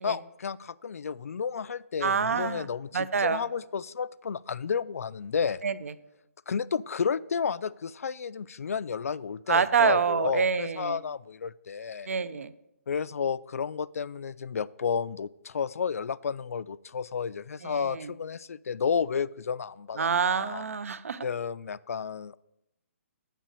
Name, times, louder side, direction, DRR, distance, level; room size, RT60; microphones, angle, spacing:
voice 1, 0.0-5.6 6.5-12.1 12.9-20.6 21.2-22.4, left 6 dB, 75° left, 18 dB, 0.4 m, -32 dB
voice 2, 2.0-2.7 2.9-3.4 5.6-5.7 9.5-11.0 12.1-12.5 17.6-18.1 20.0-21.2, right 6 dB, 65° right, 15 dB, 0.7 m, -26 dB
9.2 x 7.6 x 6.7 m, 0.88 s
hypercardioid pair, 175°, 8 cm